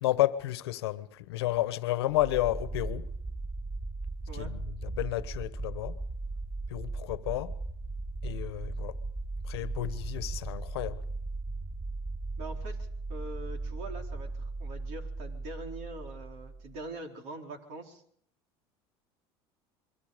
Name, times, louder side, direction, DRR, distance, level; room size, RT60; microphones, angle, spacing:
voice 1, 0.0-3.1 4.3-6.0 6.7-7.6 8.2-9.0 9.4-11.0, left 15 dB, 90° left, 1.2 m, -31 dB
sound 1, 2.1-16.9, right 3 dB, 25° right, 5.5 m, -37 dB
voice 2, 12.4-18.0, right 2 dB, 70° right, 4.4 m, -43 dB
27.0 x 23.5 x 5.2 m
supercardioid pair, 90°, 13 cm